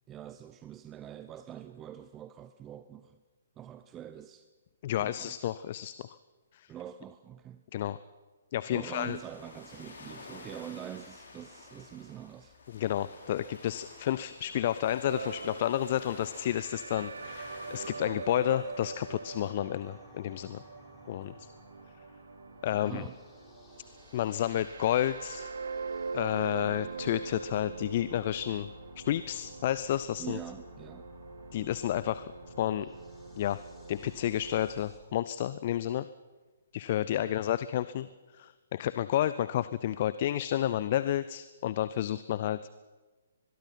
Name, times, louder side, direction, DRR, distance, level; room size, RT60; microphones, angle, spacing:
voice 1, 0.1-3.2 3.6-4.5 4.9-5.4 6.7-7.6 8.7-12.6 22.7-23.2 30.2-31.1 37.4-37.5, right 10 dB, 20° right, 11 dB, 0.7 m, -45 dB
voice 2, 4.8-6.1 6.5-6.7 7.7-8.0 8.5-9.2 12.7-20.6 21.1-21.5 22.6-23.0 24.1-25.5 26.1-30.4 31.5-32.3 32.6-32.9 33.4-33.6 33.9-36.1 36.7-38.1 38.3-42.7, left 12 dB, 40° left, 15 dB, 0.6 m, -31 dB
sound 1, 8.8-17.9, left 3 dB, 55° left, 5.7 m, -50 dB
sound 2, 15.1-34.6, right 4 dB, 70° right, 1.1 m, -43 dB
sound 3, 17.2-35.0, left 5 dB, 15° left, 3.8 m, -55 dB
23.5 x 21.5 x 5.8 m, 1.3 s
figure-of-eight pair, 125°, 0 cm